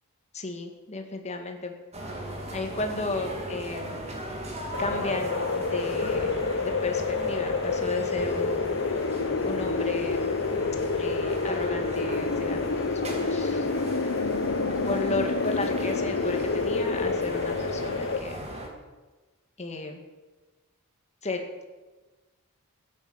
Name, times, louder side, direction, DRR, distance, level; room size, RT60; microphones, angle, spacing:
voice 1, 0.3-1.7 2.5-4.0 4.8-6.3 6.6-9.0 9.5-10.3 11.0-13.7 14.8-18.5 19.6-20.0 21.2-21.6, left 3 dB, 30° left, 4 dB, 2.0 m, -34 dB
sound 1, 1.9-18.7, right 1 dB, 30° right, 2.5 m, -37 dB
sound 2, 4.7-18.2, left 4 dB, 60° left, 0.9 m, -28 dB
16.5 x 9.7 x 7.3 m, 1.2 s
head